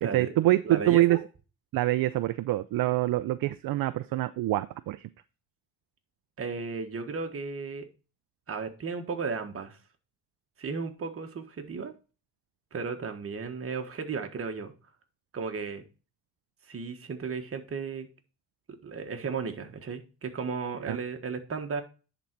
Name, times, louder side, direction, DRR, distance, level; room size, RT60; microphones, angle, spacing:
voice 1, 0.1-1.2 1.7-5.1 20.9-21.0, right 16 dB, 60° right, 13 dB, 0.5 m, -25 dB
voice 2, 0.6-1.2 6.4-7.9 8.5-9.8 10.6-11.9 12.7-14.7 15.3-15.8 16.7-18.1 18.8-21.8, right 5 dB, 35° right, 5 dB, 1.4 m, -34 dB
10.5 x 4.0 x 4.5 m, 0.33 s
cardioid pair, 115°, 39 cm